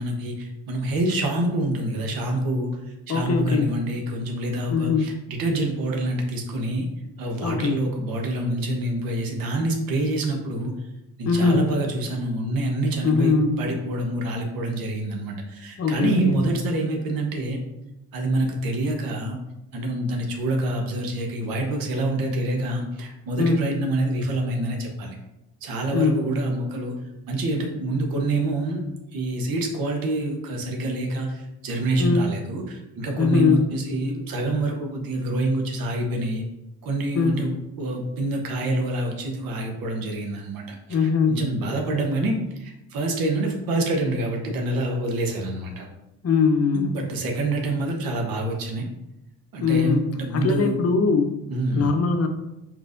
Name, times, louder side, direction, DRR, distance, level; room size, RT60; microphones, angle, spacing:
voice 1, 0.0-2.7 3.1-6.9 7.2-10.8 11.2-17.6 18.1-19.4 19.7-25.2 25.6-27.0 27.3-28.8 29.1-36.4 36.8-37.5 37.8-45.9 46.7-48.9 49.5-50.8 51.5-51.9, right 1 dB, 70° right, 2 dB, 1.1 m, -26 dB
voice 2, 3.1-3.8 4.7-5.2 7.4-7.8 11.2-11.6 13.0-13.6 15.8-16.4 23.4-23.6 25.9-26.3 32.0-32.3 33.2-33.7 37.1-37.5 40.9-41.4 46.2-46.9 49.6-51.3 51.7-52.3, left 4 dB, 45° left, 6 dB, 0.7 m, -21 dB
4.5 x 4.1 x 2.6 m, 0.93 s
supercardioid pair, 60°, 36 cm